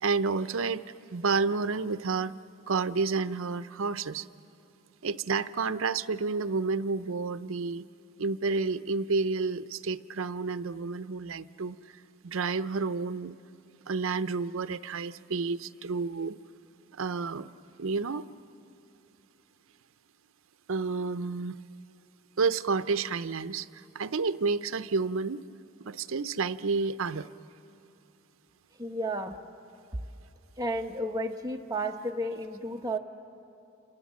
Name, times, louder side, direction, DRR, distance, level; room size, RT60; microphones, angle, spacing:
voice 1, 0.0-0.8 1.1-2.4 2.7-4.3 5.0-7.9 8.2-11.8 12.2-13.4 13.9-16.4 16.9-17.5 17.8-18.2 20.7-21.5 22.4-25.4 25.8-27.3, right 4 dB, 70° right, 12 dB, 0.6 m, -30 dB
voice 2, 28.8-29.4 30.6-33.0, right 1 dB, 15° right, 4 dB, 0.9 m, -32 dB
28.5 x 26.5 x 7.4 m, 2.8 s
head